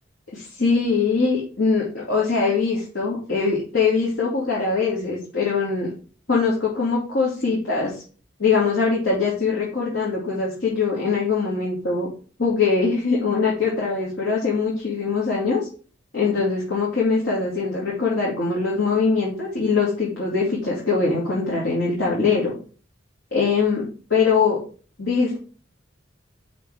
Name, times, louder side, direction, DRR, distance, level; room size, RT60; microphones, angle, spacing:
voice 1, 0.3-5.9 6.3-7.9 8.4-12.1 12.4-15.6 16.1-22.5 23.3-23.8 24.1-24.6 25.0-25.4, left 4 dB, 75° left, -6 dB, 2.6 m, -22 dB
6.0 x 5.5 x 4.9 m, 0.39 s
head